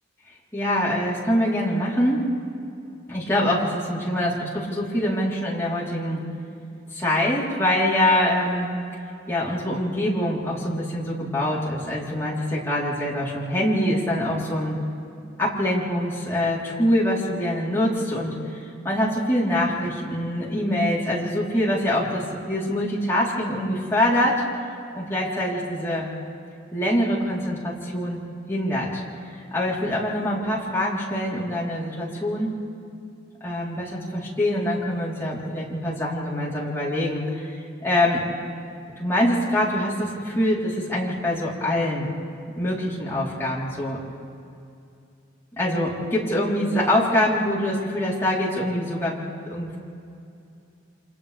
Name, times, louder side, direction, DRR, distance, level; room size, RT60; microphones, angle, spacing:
voice 1, 0.5-2.2 3.1-6.2 6.9-8.7 9.3-14.8 15.4-24.4 24.9-26.1 26.7-28.2 28.5-29.0 29.5-32.6 33.4-38.2 39.0-42.1 42.6-44.0 45.6-49.2 49.5-49.8, left 1 dB, 15° left, -7 dB, 3.9 m, -24 dB
28.5 x 27.0 x 3.5 m, 2.6 s
head